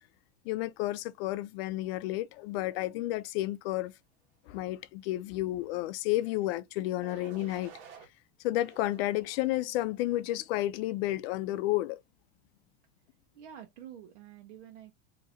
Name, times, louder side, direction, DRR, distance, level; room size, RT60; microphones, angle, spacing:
voice 1, 0.5-3.9 4.5-7.7 8.4-12.0, left 16 dB, 60° left, 0.5 m, -31 dB
sound 1, 6.1-6.5 7.0-8.1 8.6-9.6 10.2-10.6, right 6 dB, 55° right, 1.4 m, -53 dB
voice 2, 13.3-14.9, right 10 dB, 75° right, 1.1 m, -48 dB
4.2 x 2.9 x 2.5 m
supercardioid pair, 135°, 35 cm